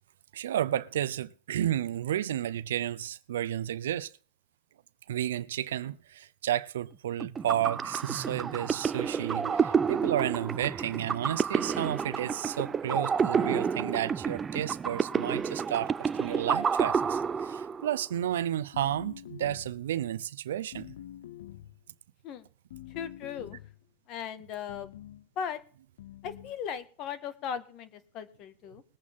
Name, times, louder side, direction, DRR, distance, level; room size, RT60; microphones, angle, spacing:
voice 1, 0.3-4.1 5.1-20.9, right 11 dB, 85° right, 0.6 m, -32 dB
sound 1, 7.2-18.0, right 6 dB, 25° right, 0.6 m, -30 dB
sound 2, 18.7-19.9 20.7-21.8 22.7-23.8 24.7-25.3 26.0-26.6, left 13 dB, 80° left, 0.6 m, -46 dB
voice 2, 22.9-23.6 24.1-24.9 25.4-25.6 26.2-28.8, left 8 dB, 50° left, 1.7 m, -37 dB
20.5 x 8.5 x 3.7 m
hypercardioid pair, 105°, 0 cm